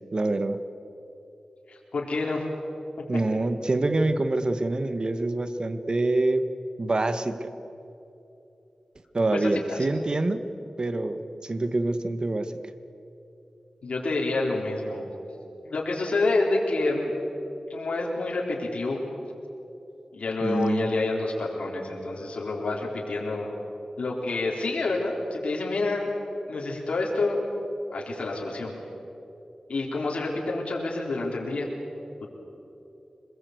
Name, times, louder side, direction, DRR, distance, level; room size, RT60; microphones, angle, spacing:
voice 1, 0.1-0.6 3.1-6.4 6.8-7.5 9.1-10.4 10.8-12.5 20.4-20.9, right 2 dB, 45° right, 10 dB, 1.4 m, -26 dB
voice 2, 1.7-2.5 9.3-9.9 13.8-15.0 15.6-17.2 17.7-19.0 20.1-23.5 24.0-26.1 26.5-27.4 27.9-28.8 29.7-31.7, left 2 dB, 80° left, -3 dB, 4.0 m, -28 dB
25.5 x 21.0 x 8.2 m, 3.0 s
wide cardioid pair, 75°, 2 cm